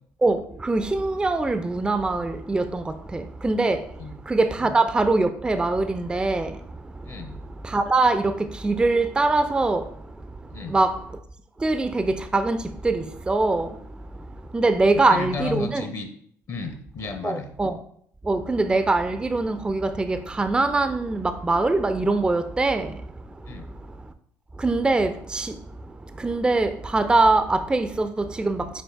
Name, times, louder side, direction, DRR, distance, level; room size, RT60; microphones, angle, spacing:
voice 1, 0.6-2.8 3.1-3.8 4.3-6.5 7.7-8.2 8.6-9.8 10.7-10.9 11.6-12.6 12.8-13.7 14.5-15.8 17.2-17.7 18.3-22.9 24.6-25.5 26.2-28.1 28.4-28.6, right 3 dB, 10° right, 0.4 m, -22 dB
voice 2, 7.0-7.4 10.5-10.8 15.1-16.1 16.5-17.5 23.4-23.7, left 4 dB, 40° left, 0.6 m, -33 dB
5.2 x 4.4 x 2.3 m
figure-of-eight pair, 55°, 9 cm